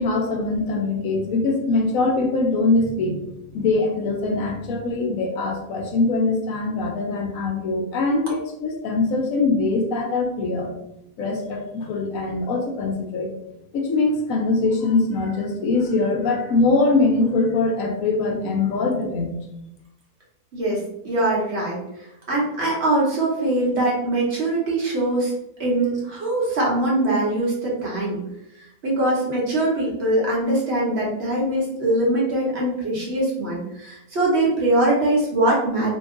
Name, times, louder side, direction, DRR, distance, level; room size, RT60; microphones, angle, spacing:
voice 1, 0.0-3.2 3.5-10.7 11.2-13.3 13.7-19.4, left 3 dB, 75° left, 2 dB, 1.0 m, -22 dB
voice 2, 20.5-21.8 22.3-25.3 25.6-28.2 28.8-36.0, right 1 dB, 50° right, -4 dB, 1.0 m, -22 dB
2.8 x 2.3 x 3.6 m, 0.84 s
omnidirectional pair, 1.6 m